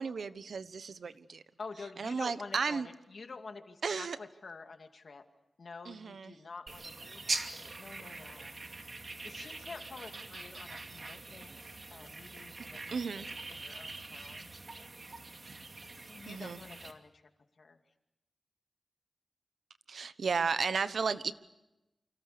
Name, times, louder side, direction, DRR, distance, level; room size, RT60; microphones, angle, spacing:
voice 1, 0.0-1.4 2.0-2.9 3.8-4.2 5.8-6.3 12.6-13.3 16.3-16.6 19.9-21.3, right 5 dB, 90° right, 13 dB, 1.1 m, -34 dB
voice 2, 1.6-5.2 5.6-8.5 9.2-14.5 15.9-17.2 17.6-17.8, left 4 dB, 65° left, 6 dB, 2.5 m, -49 dB
sound 1, 6.7-16.9, right 3 dB, 55° right, 2.5 m, -43 dB
29.0 x 26.0 x 6.8 m, 0.95 s
wide cardioid pair, 85°, 0 cm